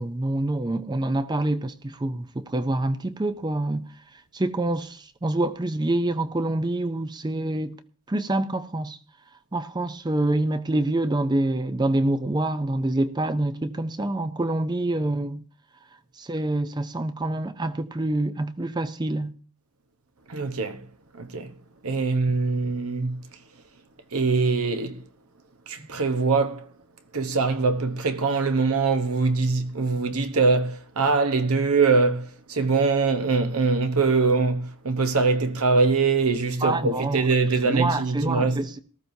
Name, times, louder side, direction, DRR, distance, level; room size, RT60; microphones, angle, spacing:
voice 1, 0.0-3.8 4.3-7.8 8.1-9.0 9.5-15.4 16.2-19.3 25.8-25.9 36.6-37.2 37.6-38.8, right 2 dB, 20° right, 0.5 m, -26 dB
voice 2, 20.3-20.8 21.2-21.5 21.8-23.2 24.1-25.0 25.7-26.7 27.1-38.6, right 4 dB, 75° right, 1.0 m, -23 dB
18.5 x 13.5 x 2.7 m
head